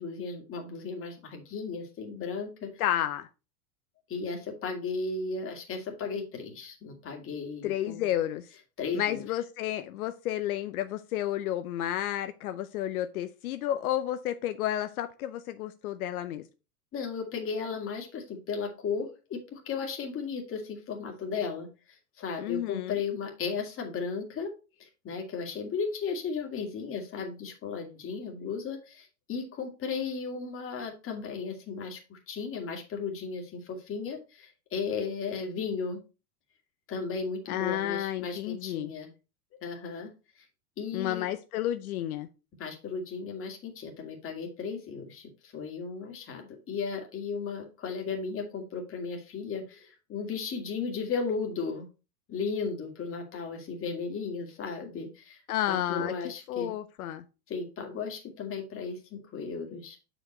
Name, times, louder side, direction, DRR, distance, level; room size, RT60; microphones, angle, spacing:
voice 1, 0.0-2.7 4.1-8.1 8.8-9.2 16.9-21.7 22.2-24.5 24.8-36.0 36.9-39.1 39.6-40.1 40.8-41.3 42.6-51.9 52.3-55.4 55.7-56.7 57.5-60.0, left 5 dB, 30° left, 3 dB, 2.1 m, -35 dB
voice 2, 2.8-3.3 7.6-8.5 8.9-16.4 22.4-23.0 37.5-38.9 40.9-42.3 55.5-56.1 56.5-57.2, left 12 dB, 80° left, 9 dB, 0.7 m, -31 dB
6.5 x 5.1 x 4.3 m, 0.30 s
supercardioid pair, 125°, 43 cm